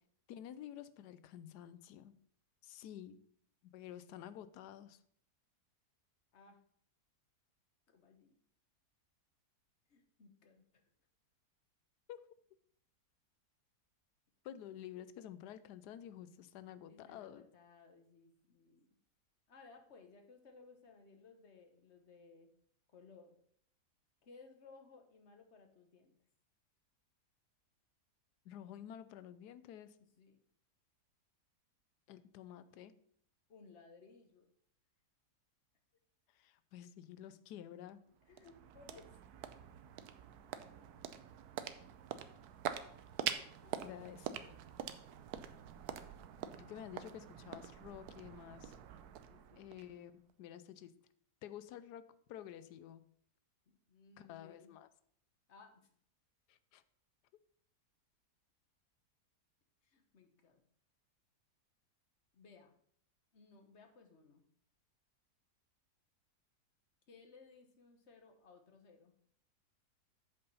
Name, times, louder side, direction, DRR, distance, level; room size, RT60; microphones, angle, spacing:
voice 1, 0.3-2.1 2.6-3.2 3.6-5.0 12.1-12.2 14.4-17.4 28.4-30.0 32.1-32.9 36.3-38.0 43.8-44.5 46.6-48.7 49.5-50.9 51.4-53.1 54.2-54.9 56.5-56.8, left 10 dB, 80° left, 14 dB, 1.2 m, -51 dB
voice 2, 7.9-8.3 9.9-10.6 16.9-18.9 19.5-22.5 22.9-23.4 24.2-26.1 30.2-30.4 33.5-34.5 38.3-39.2 42.9-43.0 43.6-44.6 49.3-49.6 53.7-54.7 55.5-55.8 59.8-60.6 62.3-62.7 63.3-64.4 67.1-69.1, left 4 dB, 45° left, 5 dB, 1.3 m, -60 dB
sound 1, 37.9-50.3, right 9 dB, 75° right, 1.1 m, -45 dB
7.9 x 5.5 x 5.5 m, 0.64 s
omnidirectional pair, 1.7 m